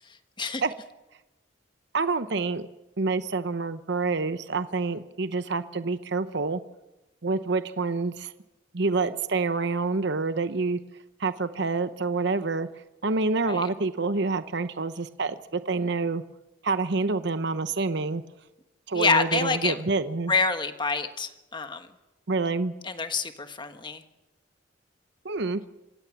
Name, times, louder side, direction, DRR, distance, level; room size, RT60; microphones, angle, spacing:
voice 1, 0.1-0.6 13.4-13.7 18.9-19.8 20.3-21.9 22.8-24.0, left 4 dB, 25° left, 8 dB, 1.4 m, -27 dB
voice 2, 1.9-2.7 3.0-6.6 7.2-8.3 8.7-10.8 11.2-12.7 13.0-16.2 16.6-18.2 18.9-20.3 22.3-22.7 25.2-25.6, right 3 dB, 60° right, 11 dB, 0.9 m, -27 dB
27.0 x 16.0 x 7.2 m, 0.99 s
head